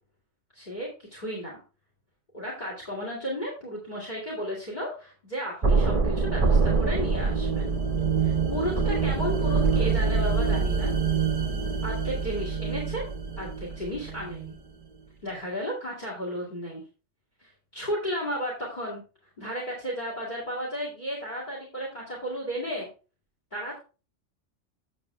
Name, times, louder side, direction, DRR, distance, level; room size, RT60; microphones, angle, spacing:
voice 1, 0.5-1.6 2.3-7.7 8.2-10.9 11.8-13.1 13.4-14.5 15.2-16.8 17.4-19.0 19.4-22.9 23.5-23.8, equal, 35° left, -2 dB, 2.5 m, -34 dB
sound 1, 5.6-14.5, right 4 dB, 35° right, 0.9 m, -25 dB
9.3 x 6.5 x 3.4 m, 0.33 s
omnidirectional pair, 1.2 m